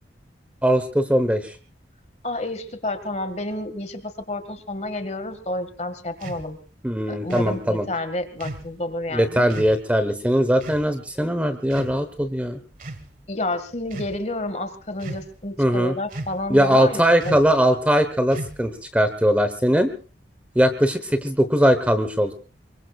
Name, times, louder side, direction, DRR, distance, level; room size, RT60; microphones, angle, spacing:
voice 1, 0.6-1.5 6.8-7.9 9.1-12.6 15.6-16.0 16.5-19.9 20.5-22.3, equal, 10° right, 9 dB, 1.1 m, -20 dB
voice 2, 2.2-6.6 7.1-9.5 13.3-17.4 17.7-17.8, left 1 dB, 40° left, 10 dB, 1.9 m, -30 dB
sound 1, 6.2-6.5 7.3-7.6 8.4-8.7 9.5-9.8 10.6-10.9 11.7-12.2 12.8-13.1 13.8-14.2 15.0-15.4 16.1-16.5 17.2-17.5 18.3-18.8, right 1 dB, 45° right, 1.7 m, -35 dB
25.5 x 23.0 x 2.4 m, 0.36 s
head